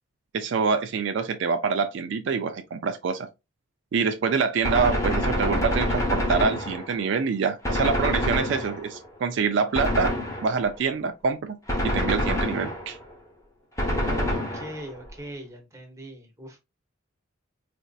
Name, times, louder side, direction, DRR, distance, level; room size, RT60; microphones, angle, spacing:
voice 1, 0.3-3.3 3.9-10.1 10.4-11.6 11.8-13.0, right 5 dB, 60° right, 0.3 m, -26 dB
Gunshot gunfire, 4.6-7.1 7.6-9.1 9.7-10.8 11.7-13.1 13.8-15.0, left 1 dB, 15° left, 0.8 m, -26 dB
voice 2, 13.8-16.6, equal, 15° right, 0.8 m, -40 dB
4.2 x 2.5 x 2.3 m
head